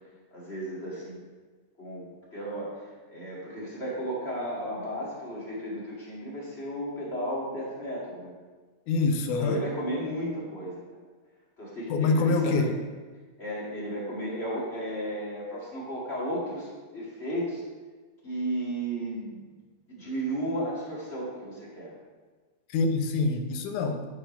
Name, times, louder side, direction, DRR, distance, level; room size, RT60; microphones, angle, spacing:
voice 1, 0.3-1.2 1.8-8.3 9.4-10.8 11.6-12.7 13.4-17.6 18.2-19.5 19.9-21.9, right 1 dB, 25° left, -7 dB, 1.6 m, -34 dB
voice 2, 8.9-9.6 11.9-12.7 22.7-24.1, left 3 dB, 85° left, 6 dB, 2.2 m, -25 dB
8.5 x 4.6 x 5.0 m, 1.4 s
omnidirectional pair, 3.5 m